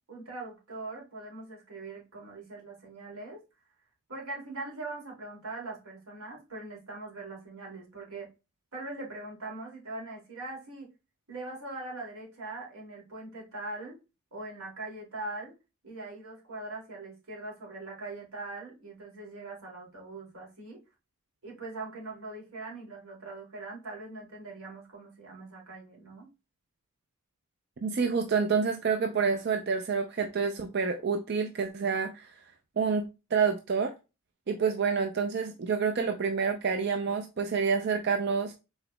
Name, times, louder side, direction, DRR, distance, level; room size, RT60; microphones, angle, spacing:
voice 1, 0.1-3.4 4.1-8.3 8.7-10.9 11.3-14.0 14.3-15.5 15.8-20.8 21.4-26.3, right 2 dB, 90° right, 2.5 m, -41 dB
voice 2, 27.8-32.3 32.8-33.0 33.3-33.9 34.5-38.5, right 5 dB, 50° right, 0.4 m, -28 dB
5.9 x 3.9 x 2.2 m
head